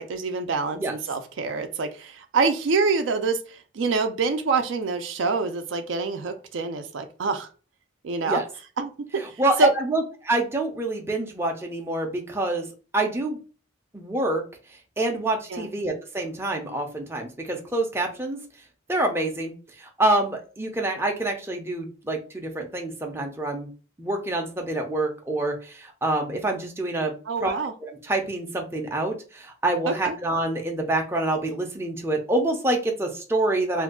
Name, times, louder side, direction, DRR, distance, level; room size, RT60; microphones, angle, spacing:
voice 1, 0.0-3.4 3.7-7.5 8.0-8.4 8.8-9.2 9.6-9.7 15.5-15.7 27.3-27.7 29.9-30.2, right 4 dB, 65° right, 7 dB, 0.4 m, -26 dB
voice 2, 9.2-12.7 12.9-13.4 13.9-14.4 15.0-18.4 18.9-23.7 24.0-27.1 27.4-27.5 27.8-33.8, right 2 dB, 10° right, 1 dB, 0.5 m, -26 dB
2.5 x 2.3 x 3.6 m, 0.36 s
head